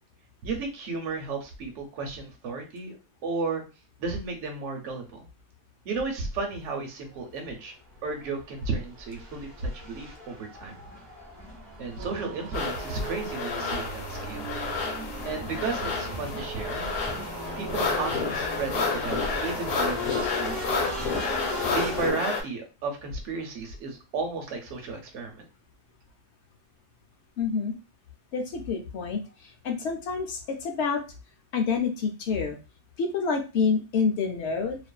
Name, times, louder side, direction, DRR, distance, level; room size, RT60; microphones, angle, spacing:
voice 1, 0.4-3.0 3.2-3.6 4.0-5.3 5.8-7.7 8.0-10.8 11.8-14.5 15.2-16.9 17.5-20.7 21.7-25.4, right 4 dB, 65° right, 2 dB, 0.9 m, -33 dB
sound 1, 7.4-7.5 8.0-22.1, left 1 dB, 15° right, 0.8 m, -38 dB
sound 2, 12.0-19.7, right 7 dB, 90° right, 1.1 m, -41 dB
sound 3, 12.5-22.4, left 4 dB, 80° left, 1.2 m, -30 dB
voice 2, 27.4-27.7 28.3-31.0 31.5-32.6 33.0-34.8, left 5 dB, 65° left, 4 dB, 0.7 m, -28 dB
2.5 x 2.4 x 2.2 m, 0.30 s
omnidirectional pair, 1.5 m